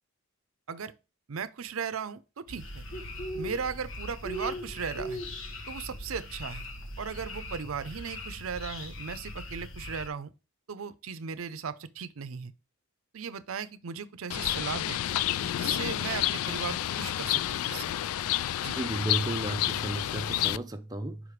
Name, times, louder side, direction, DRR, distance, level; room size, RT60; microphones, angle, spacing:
voice 1, 1.3-2.8 3.3-5.2 5.7-6.6 7.0-10.3 10.7-12.5 13.1-15.0 15.4-18.0 18.6-18.8, right 6 dB, 75° right, 0.6 m, -37 dB
sound 1, 2.5-10.1, left 1 dB, 65° left, 1.2 m, -39 dB
Bird, 14.3-20.6, left 13 dB, 85° left, 0.3 m, -30 dB
voice 2, 18.7-21.2, right 1 dB, 20° right, 0.6 m, -33 dB
5.1 x 4.9 x 5.0 m
head